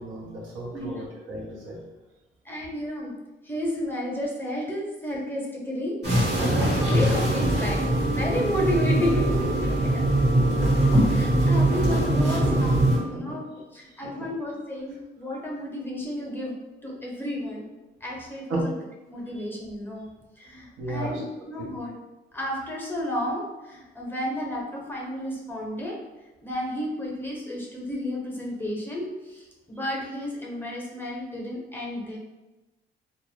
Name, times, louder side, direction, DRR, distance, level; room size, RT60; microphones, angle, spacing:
voice 1, 0.0-1.8 7.4-7.5 13.1-13.4 14.2-14.3 18.5-18.7 19.3-19.4 20.8-21.2 21.6-21.7, right 1 dB, 80° right, -3 dB, 0.8 m, -33 dB
voice 2, 0.7-1.0 2.4-3.1 3.4-5.9 6.5-7.8 8.1-9.7 10.7-12.8 13.0-13.5 13.7-16.5 16.8-17.7 18.0-18.7 19.1-20.0 20.4-21.2 21.5-21.9 22.3-26.0 26.4-32.2, left 1 dB, 10° left, -3 dB, 0.7 m, -32 dB
sound 1, 6.0-13.0, right 1 dB, 60° right, 1.2 m, -22 dB
2.5 x 2.2 x 3.1 m, 1.1 s
cardioid pair, 90°, 20 cm